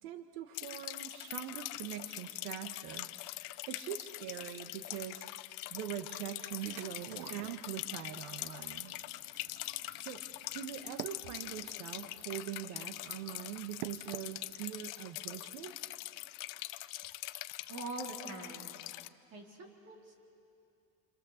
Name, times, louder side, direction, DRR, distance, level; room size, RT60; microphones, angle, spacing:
voice 1, 0.0-3.1 3.7-8.9 10.0-10.2 10.5-15.7, right 11 dB, 85° right, 7 dB, 1.4 m, -43 dB
sound 1, 0.5-19.1, left 18 dB, 50° left, 0.6 m, -43 dB
sound 2, 6.6-14.9, right 15 dB, 60° right, 0.6 m, -51 dB
voice 2, 17.7-18.8 19.3-20.1, right 3 dB, 35° right, 1 dB, 3.5 m, -44 dB
28.5 x 26.5 x 7.2 m, 2.6 s
cardioid pair, 175°, 44 cm